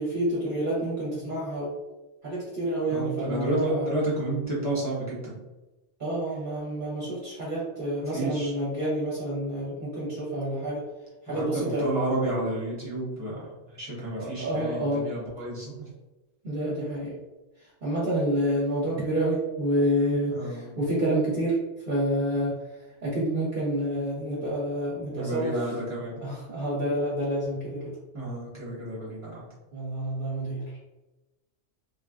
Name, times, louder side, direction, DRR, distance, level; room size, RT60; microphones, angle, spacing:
voice 1, 0.0-1.8 2.2-3.9 6.0-10.8 11.2-11.9 14.2-15.1 16.4-17.1 17.6-21.6 21.9-25.6 26.2-28.0 29.7-30.6, right 1 dB, 45° right, -8 dB, 1.0 m, -28 dB
voice 2, 2.9-5.3 8.1-8.5 11.3-15.9 20.2-20.7 25.1-26.2 28.1-29.5, right 1 dB, 15° left, -9 dB, 0.7 m, -31 dB
3.3 x 2.3 x 2.4 m, 1.0 s
omnidirectional pair, 1.3 m